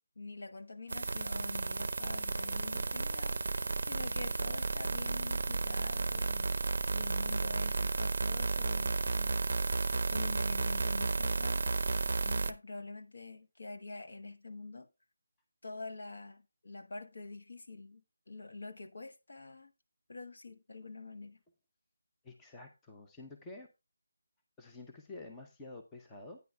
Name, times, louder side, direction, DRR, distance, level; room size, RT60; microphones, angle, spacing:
voice 1, 0.0-9.5 10.1-11.7 12.2-14.9 15.6-18.0 18.3-19.7 20.1-21.4, left 3 dB, 55° left, 1.1 m, -46 dB
sound 1, 0.9-12.5, right 3 dB, 50° right, 0.6 m, -33 dB
voice 2, 22.2-23.7 24.6-26.4, left 2 dB, 5° left, 0.6 m, -49 dB
10.5 x 9.4 x 2.3 m
figure-of-eight pair, 175°, 0 cm